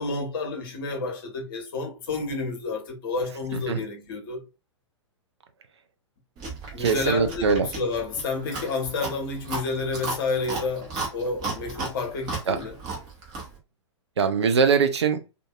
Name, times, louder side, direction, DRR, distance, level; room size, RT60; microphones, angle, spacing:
voice 1, 0.0-4.4 6.7-12.8, left 3 dB, 50° left, 1.0 m, -30 dB
Chewing mastication, 6.4-13.6, right 3 dB, 30° right, 1.0 m, -35 dB
voice 2, 6.8-7.7 12.5-12.6 14.2-15.2, right 5 dB, 65° right, 0.6 m, -22 dB
2.6 x 2.5 x 2.3 m
figure-of-eight pair, 105°, 15 cm